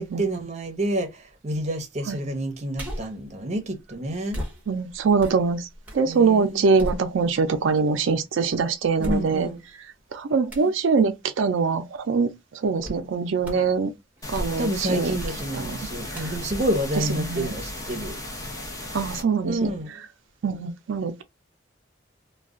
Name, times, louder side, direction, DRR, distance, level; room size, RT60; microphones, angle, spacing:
voice 1, 0.0-4.4 6.1-7.0 9.0-9.6 14.6-18.2 19.5-20.0, right 1 dB, 35° right, 0.7 m, -29 dB
sound 1, 2.8-3.2 4.3-6.1 6.4-7.6 8.1-8.2 9.0-9.7 10.5-10.8 12.8-13.1 13.4-13.8 14.2-14.8 15.2-15.5 16.1-17.8 18.2-18.3, equal, 10° right, 0.9 m, -35 dB
voice 2, 4.7-5.7 5.9-9.5 10.1-13.9 14.3-15.1 15.6-15.8 16.1-16.2 17.2-17.5 18.9-19.7 20.4-21.2, right 5 dB, 85° right, 0.4 m, -23 dB
sound 2, 14.2-19.2, left 1 dB, 20° left, 0.8 m, -35 dB
2.4 x 2.2 x 3.5 m
head